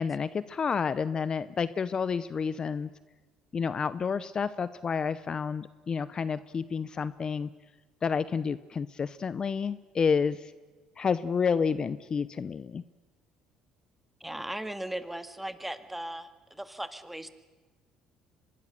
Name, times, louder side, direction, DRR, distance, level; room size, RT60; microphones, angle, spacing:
voice 1, 0.0-2.9 3.5-7.5 8.0-10.5 11.0-12.8, left 6 dB, 40° left, 16 dB, 0.7 m, -30 dB
voice 2, 14.2-17.3, right 1 dB, 5° right, 10 dB, 1.8 m, -38 dB
24.5 x 20.5 x 6.7 m, 1.3 s
hypercardioid pair, 70°, 2 cm